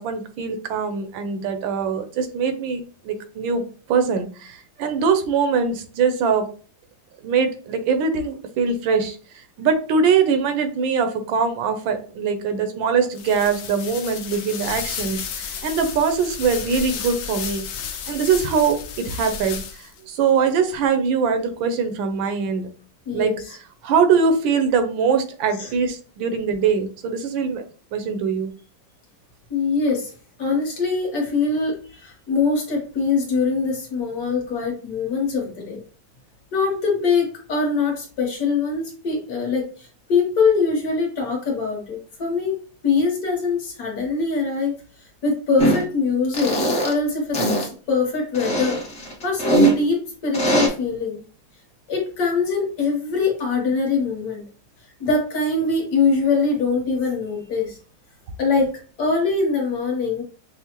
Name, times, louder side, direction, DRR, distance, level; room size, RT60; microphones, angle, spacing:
voice 1, 0.0-6.5 7.2-17.6 18.1-22.7 23.1-23.6 23.8-27.6 27.9-28.5, right 5 dB, 85° right, 7 dB, 1.4 m, -22 dB
sound 1, 13.1-20.0, left 7 dB, 80° left, 1.3 m, -33 dB
voice 2, 23.1-23.4 25.6-25.7 29.5-30.1 30.4-35.8 36.5-39.7 40.1-42.6 42.8-44.7 45.2-46.5 46.8-47.4 47.9-48.8 49.2-51.2 51.9-54.4 55.0-57.8 58.4-58.7 59.0-60.2, left 4 dB, 55° left, 0 dB, 1.5 m, -22 dB
sound 2, 45.6-45.8 46.3-46.9 47.3-47.7 48.3-49.7 50.3-50.7, right 1 dB, 40° left, 1.0 m, -20 dB
5.6 x 2.1 x 2.9 m, 0.40 s
omnidirectional pair, 2.1 m